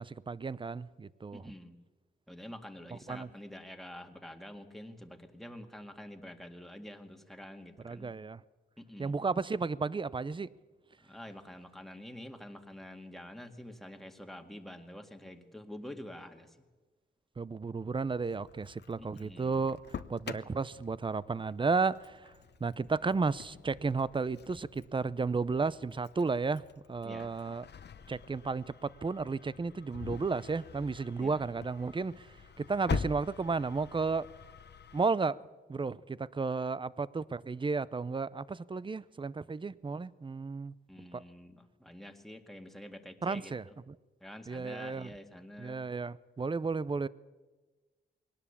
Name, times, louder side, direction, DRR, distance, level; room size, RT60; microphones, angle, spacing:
voice 1, 0.0-1.4 3.1-3.3 7.8-8.4 9.0-10.5 17.4-19.8 20.1-22.3 22.6-26.6 26.9-27.6 28.1-32.3 32.6-34.3 34.9-35.4 35.7-40.7 41.1-41.2 43.2-43.6 44.5-45.1 45.6-47.1, right 4 dB, 25° right, 0.6 m, -33 dB
voice 2, 1.3-1.8 2.3-8.1 8.8-9.2 11.0-16.6 19.0-19.5 27.0-27.3 31.2-31.4 40.9-43.8 44.2-45.8, left 1 dB, ahead, 1.9 m, -47 dB
Engine starting, 18.1-35.0, left 6 dB, 60° left, 0.9 m, -45 dB
21.0 x 18.0 x 7.2 m
cardioid pair, 85°, 20 cm